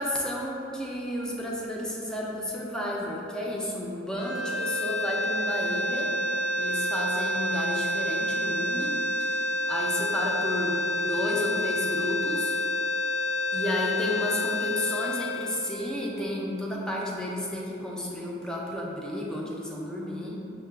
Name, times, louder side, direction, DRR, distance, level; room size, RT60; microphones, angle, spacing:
voice 1, 0.0-6.2 6.6-9.0 9.7-12.6 13.5-20.4, left 1 dB, 5° left, -3 dB, 0.5 m, -32 dB
sound 1, 4.1-16.4, left 1 dB, 80° left, 0.6 m, -29 dB
6.4 x 2.2 x 3.3 m, 2.8 s
head